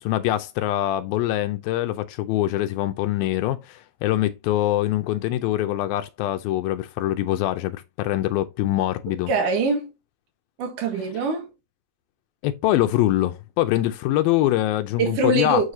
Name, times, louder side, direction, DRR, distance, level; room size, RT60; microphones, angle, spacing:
voice 1, 0.0-9.3 12.4-15.7, left 14 dB, 85° left, 2.4 m, -24 dB
voice 2, 9.3-9.9 10.6-11.5 15.0-15.7, right 3 dB, 65° right, 3.3 m, -23 dB
7.2 x 6.5 x 2.7 m
omnidirectional pair, 4.3 m